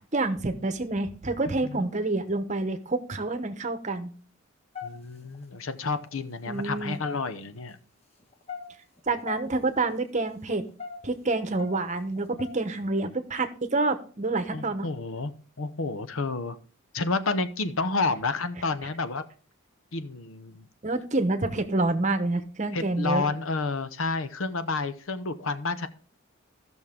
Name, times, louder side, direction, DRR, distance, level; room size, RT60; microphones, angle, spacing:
voice 1, 0.1-4.1 6.5-7.0 9.1-10.7 11.0-14.9 20.8-23.3, right 2 dB, 35° right, 9 dB, 0.9 m, -28 dB
voice 2, 1.5-1.8 4.8-7.8 14.5-16.6 16.9-19.2 19.9-20.6 22.7-25.9, left 3 dB, 80° left, 11 dB, 0.9 m, -30 dB
sound 1, 4.7-5.4 6.0-6.1 6.7-7.7 8.2-9.4 9.7-9.9 10.5-12.8, left 6 dB, 30° left, 1.3 m, -40 dB
15.0 x 6.2 x 3.6 m, 0.41 s
head